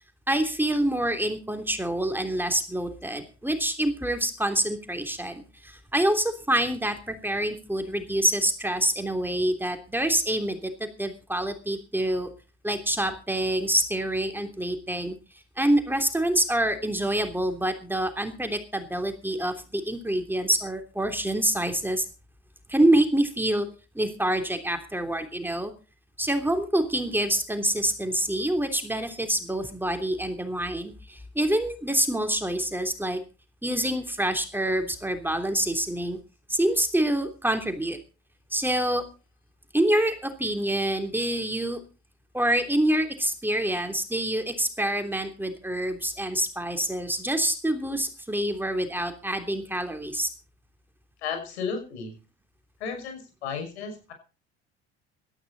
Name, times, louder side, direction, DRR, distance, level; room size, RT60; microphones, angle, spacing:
voice 1, 0.3-12.3 12.6-15.1 15.6-22.0 22.7-23.7 23.9-25.7 26.2-33.2 33.6-36.2 36.5-38.0 38.5-39.0 39.7-41.8 42.3-50.3, right 1 dB, 5° right, 6 dB, 3.2 m, -26 dB
voice 2, 51.2-52.1 52.8-54.1, left 6 dB, 80° left, 6 dB, 6.1 m, -33 dB
17.5 x 13.5 x 4.1 m, 0.33 s
hypercardioid pair, 65°, 32 cm